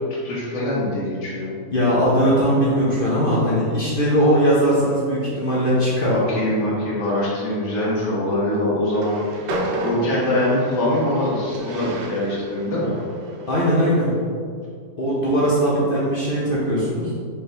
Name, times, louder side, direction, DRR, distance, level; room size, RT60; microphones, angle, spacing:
voice 1, 0.2-1.5 6.1-9.5 9.8-13.0, left 1 dB, 80° left, -7 dB, 1.9 m, -23 dB
voice 2, 1.7-6.2 13.5-14.1 15.0-17.1, equal, 50° left, -7 dB, 0.6 m, -19 dB
Train, 8.8-14.1, right 1 dB, 85° right, 1.2 m, -32 dB
4.4 x 3.7 x 3.3 m, 2.2 s
omnidirectional pair, 1.8 m